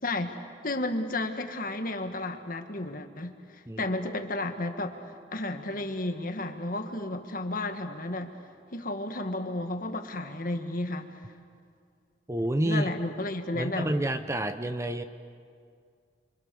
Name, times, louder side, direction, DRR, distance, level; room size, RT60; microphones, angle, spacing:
voice 1, 0.6-5.0 5.3-8.4 8.7-11.1 12.6-14.0, left 2 dB, 50° left, 6 dB, 1.7 m, -32 dB
voice 2, 12.3-12.9 13.5-15.0, right 1 dB, 15° right, 9 dB, 0.8 m, -29 dB
29.5 x 25.0 x 7.0 m, 2.2 s
head